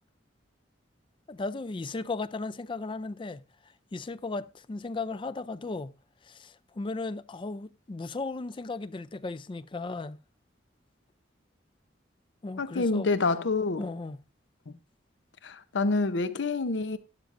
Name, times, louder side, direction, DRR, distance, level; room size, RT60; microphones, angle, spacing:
voice 1, 1.3-3.4 3.9-5.9 6.2-10.2 12.4-13.1 13.8-14.2, left 3 dB, 25° left, 0.4 m, -36 dB
voice 2, 12.6-13.9 14.7-14.8 15.4-17.0, left 3 dB, 70° left, 0.7 m, -27 dB
12.0 x 10.5 x 2.6 m
head